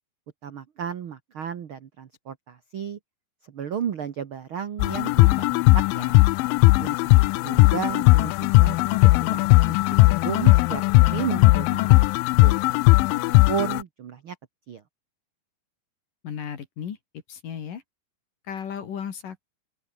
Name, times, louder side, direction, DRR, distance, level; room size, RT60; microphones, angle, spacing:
voice 1, 0.4-3.0 3.5-6.1 6.8-8.3 8.6-9.7 10.0-12.6 13.1-14.4 14.7-14.8, right 8 dB, 85° right, 1.1 m, -34 dB
sound 1, 4.8-13.8, left 21 dB, 80° left, 2.0 m, -18 dB
voice 2, 16.2-17.0 17.3-17.8 18.5-19.4, left 8 dB, 60° left, 3.9 m, -34 dB
open air
omnidirectional pair, 4.5 m